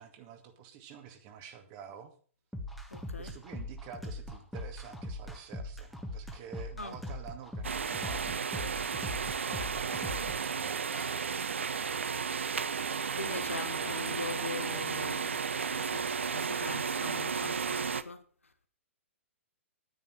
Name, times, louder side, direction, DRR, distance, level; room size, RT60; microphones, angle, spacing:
voice 1, 0.0-2.1 3.2-11.7, right 7 dB, 35° right, 2.2 m, -49 dB
sound 1, 2.5-10.4, left 1 dB, ahead, 1.8 m, -41 dB
voice 2, 2.9-3.3 6.8-7.0 13.1-15.4 15.7-18.5, left 4 dB, 80° left, 1.5 m, -41 dB
sound 2, 7.6-18.0, right 6 dB, 65° right, 0.7 m, -33 dB
Bowed string instrument, 10.8-17.6, equal, 90° right, 1.5 m, -54 dB
11.0 x 9.9 x 6.2 m
figure-of-eight pair, 115°, 7 cm